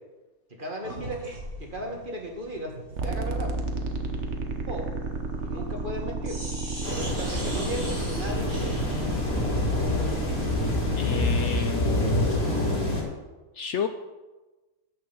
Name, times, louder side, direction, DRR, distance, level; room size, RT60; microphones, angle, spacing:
voice 1, 0.6-1.3 1.6-2.7 3.0-3.5 4.7-4.9 5.4-6.4 6.9-8.8, right 1 dB, 35° right, 1 dB, 1.9 m, -35 dB
sound 1, 0.8-6.0 6.2-12.8, right 1 dB, 80° right, 4.6 m, -41 dB
sound 2, 3.0-11.0, right 3 dB, 55° right, 1.4 m, -32 dB
sound 3, 6.8-13.0, left 2 dB, 90° left, 3.0 m, -27 dB
voice 2, 11.0-12.3 13.5-13.9, left 8 dB, 65° left, 8 dB, 0.8 m, -31 dB
10.5 x 6.7 x 7.0 m, 1.2 s
omnidirectional pair, 1.5 m